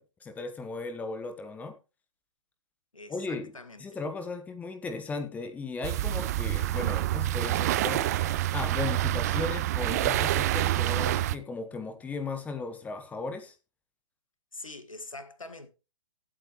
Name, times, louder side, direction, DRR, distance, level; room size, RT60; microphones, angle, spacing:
voice 1, 0.0-1.7 3.1-3.5 3.8-13.5, left 3 dB, 10° left, 1.5 m, -36 dB
voice 2, 2.9-4.0 14.5-15.7, left 2 dB, 75° left, 1.9 m, -44 dB
sound 1, 5.8-11.4, right 14 dB, 30° right, 0.6 m, -27 dB
16.0 x 8.5 x 3.2 m
figure-of-eight pair, 125°, 17 cm